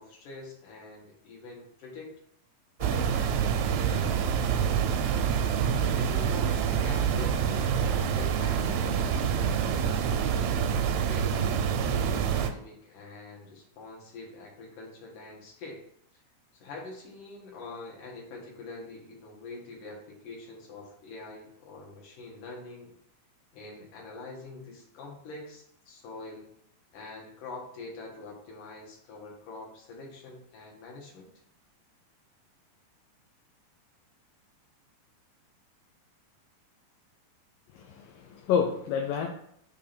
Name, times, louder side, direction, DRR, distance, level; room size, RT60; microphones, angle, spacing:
voice 1, 0.0-2.1 2.8-4.1 5.8-10.5 11.0-15.8 16.5-22.9 23.5-26.4 26.9-31.3, left 3 dB, 65° left, -2 dB, 3.2 m, -44 dB
sound 1, 2.8-12.5, right 7 dB, 90° right, 2.5 m, -26 dB
voice 2, 37.7-39.3, left 7 dB, 80° left, 2 dB, 2.4 m, -29 dB
6.6 x 3.6 x 5.9 m, 0.70 s
omnidirectional pair, 4.1 m